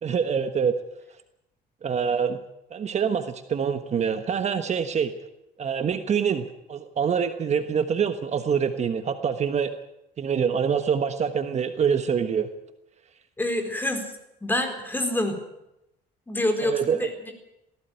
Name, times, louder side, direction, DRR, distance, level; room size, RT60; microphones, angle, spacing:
voice 1, 0.0-0.7 1.8-2.4 2.7-5.1 5.6-9.7 10.2-12.5 16.6-17.0, right 7 dB, 40° right, 9 dB, 1.3 m, -25 dB
voice 2, 13.4-14.1 14.4-15.4 16.3-17.3, left 1 dB, 10° left, 6 dB, 4.2 m, -27 dB
18.5 x 15.5 x 9.3 m, 0.87 s
cardioid pair, 110°, 17 cm